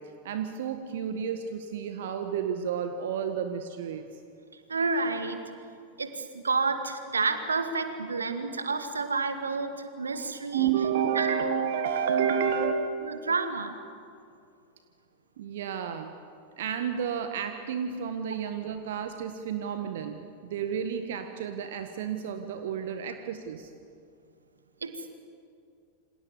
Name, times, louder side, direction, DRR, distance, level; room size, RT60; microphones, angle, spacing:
voice 1, 0.2-4.1 10.1-12.8 15.4-16.1 16.6-23.7, right 7 dB, 55° right, 7 dB, 1.6 m, -31 dB
voice 2, 4.7-5.4 6.0-10.7 11.1-11.4 12.2-12.3 13.0-13.7 24.8-25.1, right 4 dB, 75° right, 8 dB, 2.1 m, -30 dB
28.5 x 27.0 x 7.3 m, 2.4 s
figure-of-eight pair, 90°, 0 cm